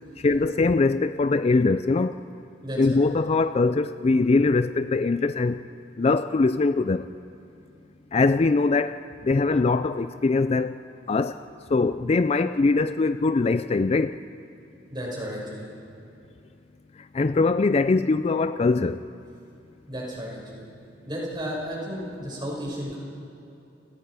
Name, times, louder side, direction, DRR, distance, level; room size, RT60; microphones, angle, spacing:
voice 1, 0.2-2.2 2.8-5.6 6.0-7.1 8.1-9.0 9.2-10.7 11.1-11.4 11.7-14.2 17.1-19.0, left 3 dB, 35° left, 12 dB, 0.4 m, -22 dB
voice 2, 2.6-3.0 14.9-15.6 19.9-20.6 21.1-23.0, equal, 25° right, -3 dB, 6.1 m, -33 dB
29.5 x 18.0 x 4.9 m, 2.8 s
head